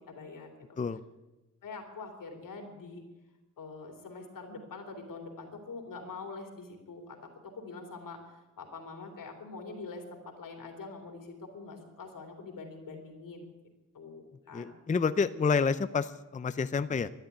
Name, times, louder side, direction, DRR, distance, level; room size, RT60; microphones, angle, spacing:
voice 1, 0.1-0.5 1.6-3.0 3.6-7.2 7.4-13.5 13.9-14.7, left 3 dB, 85° left, 3 dB, 3.2 m, -44 dB
voice 2, 14.5-17.1, left 5 dB, 25° left, 12 dB, 0.5 m, -29 dB
12.5 x 10.5 x 9.5 m, 1.1 s
wide cardioid pair, 100°, 32 cm